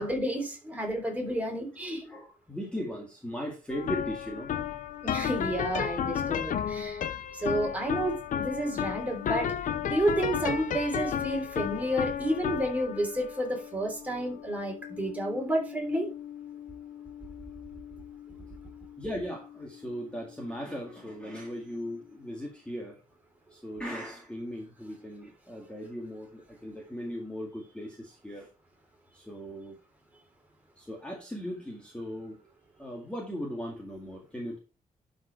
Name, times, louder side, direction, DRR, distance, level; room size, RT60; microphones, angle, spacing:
voice 1, 0.0-2.0 5.0-7.1 7.3-9.5 9.8-16.1, right 1 dB, 10° right, 1 dB, 3.4 m, -30 dB
voice 2, 1.9-4.5 19.0-23.0 23.5-28.5 29.1-29.8 30.8-32.4 32.8-34.6, equal, 5° left, -1 dB, 2.1 m, -38 dB
sound 1, 3.7-20.9, left 8 dB, 70° left, 0.8 m, -34 dB
11.5 x 5.3 x 4.5 m, 0.31 s
wide cardioid pair, 165°, 14 cm